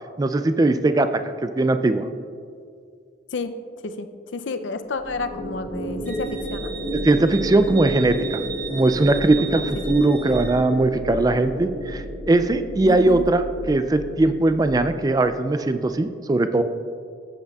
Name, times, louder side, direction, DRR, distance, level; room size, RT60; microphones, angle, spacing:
voice 1, 0.2-1.1 1.4-2.0 7.0-8.4 8.7-16.6, right 2 dB, 20° right, 10 dB, 0.3 m, -20 dB
voice 2, 4.3-6.7 9.4-9.6 9.9-10.0 12.9-13.3, left 3 dB, 75° left, 9 dB, 0.5 m, -30 dB
sound 1, 4.9-15.4, right 1 dB, 5° left, 2.3 m, -32 dB
Wind instrument woodwind instrument, 6.1-10.6, right 7 dB, 50° right, 1.9 m, -36 dB
14.0 x 8.0 x 2.3 m, 2.3 s
head